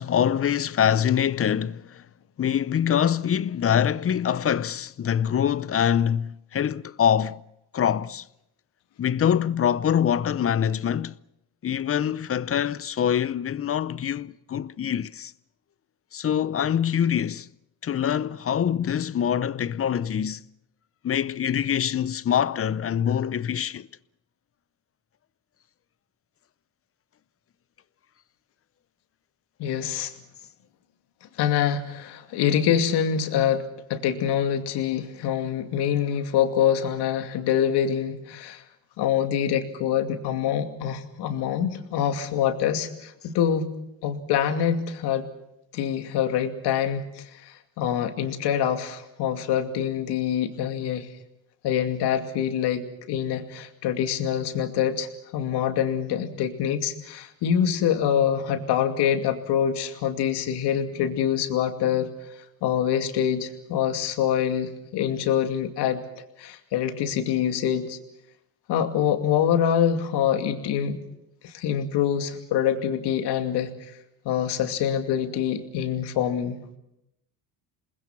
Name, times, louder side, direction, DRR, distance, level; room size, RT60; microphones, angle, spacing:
voice 1, 0.0-2.0 2.4-7.4 7.7-8.3 9.0-11.1 11.6-15.3 16.1-17.5 17.8-20.4 21.0-23.9, left 9 dB, 35° left, 0.7 m, -24 dB
voice 2, 29.6-30.1 31.4-33.6 33.9-38.6 39.0-43.7 44.0-45.3 45.7-51.1 51.6-62.1 62.6-66.0 66.4-68.0 68.7-71.0 71.4-73.7 74.2-76.6, left 9 dB, 75° left, 2.5 m, -25 dB
28.0 x 20.5 x 6.0 m
supercardioid pair, 85°, 40 cm